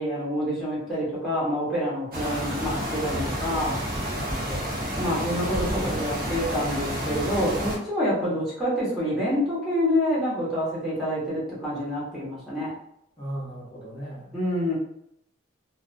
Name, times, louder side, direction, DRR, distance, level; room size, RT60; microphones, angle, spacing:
voice 1, 0.0-3.8 4.9-12.7 14.3-14.8, equal, ahead, -10 dB, 0.8 m, -27 dB
sound 1, 2.1-7.8, equal, 45° right, 0.7 m, -30 dB
voice 2, 13.2-14.4, right 1 dB, 25° left, -8 dB, 0.7 m, -36 dB
2.4 x 2.1 x 2.5 m, 0.76 s
head